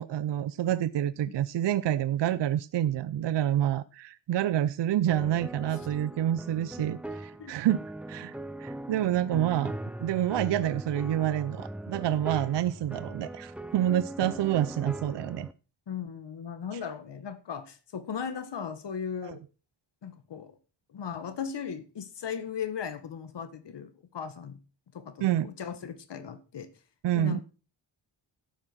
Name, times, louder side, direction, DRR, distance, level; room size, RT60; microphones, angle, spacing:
voice 1, 0.0-7.8 8.1-15.5 16.7-16.8 19.2-19.4 25.2-25.5 27.0-27.4, right 11 dB, 65° right, 0.6 m, -28 dB
sound 1, 5.1-15.5, right 1 dB, 5° right, 0.6 m, -40 dB
voice 2, 15.9-19.4 20.0-20.5 20.9-24.6 24.9-26.7 27.1-27.4, left 7 dB, 65° left, 1.8 m, -37 dB
12.0 x 8.8 x 6.2 m
wide cardioid pair, 165°, 46 cm